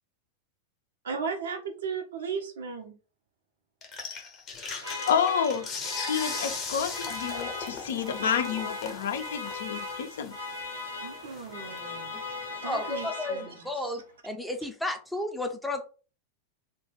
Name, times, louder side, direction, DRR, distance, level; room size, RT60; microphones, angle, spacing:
voice 1, 1.0-3.0 11.0-12.1 12.6-13.5, right 5 dB, 65° right, 0.6 m, -36 dB
sound 1, 3.8-13.1, left 5 dB, 30° left, 0.7 m, -40 dB
sound 2, 4.8-13.8, left 3 dB, 85° right, 0.9 m, -38 dB
voice 2, 5.1-5.7 6.0-10.4, left 7 dB, 60° left, 0.4 m, -29 dB
voice 3, 12.6-15.8, left 1 dB, 5° left, 0.5 m, -33 dB
2.2 x 2.2 x 3.1 m
figure-of-eight pair, 90°, 0 cm